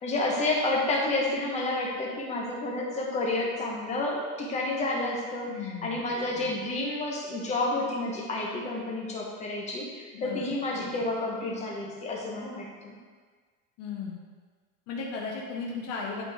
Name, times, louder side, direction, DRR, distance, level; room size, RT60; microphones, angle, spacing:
voice 1, 0.0-13.0, left 2 dB, 20° left, -2 dB, 0.9 m, -30 dB
voice 2, 5.5-6.0 10.1-10.6 13.8-14.2 14.9-16.2, left 4 dB, 45° left, -3 dB, 0.9 m, -35 dB
8.7 x 4.2 x 3.4 m, 1.5 s
cardioid pair, 175°, 34 cm